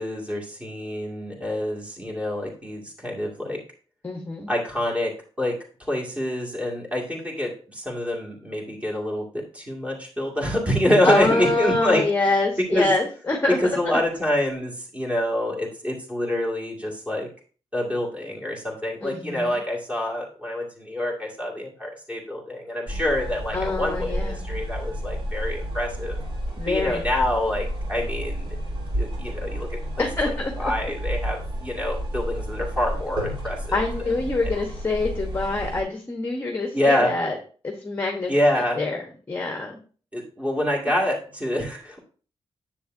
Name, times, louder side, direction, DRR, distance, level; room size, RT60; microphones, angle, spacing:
voice 1, 0.0-3.6 4.5-5.1 5.4-5.5 5.8-12.0 12.7-12.9 13.6-17.3 17.7-26.2 26.7-28.6 28.9-33.6 36.7-37.1 38.3-38.8 40.1-42.0, left 1 dB, 10° right, -2 dB, 2.1 m, -26 dB
voice 2, 4.0-4.5 11.0-13.6 19.0-19.6 23.5-24.5 26.6-27.1 30.0-30.7 33.7-37.4 37.6-38.3 38.7-39.0 39.3-39.8, left 3 dB, 20° left, 3 dB, 1.0 m, -25 dB
sound 1, 22.9-35.8, equal, 50° right, 3.8 m, -31 dB
10.0 x 7.3 x 2.6 m, 0.40 s
wide cardioid pair, 155°, 11 cm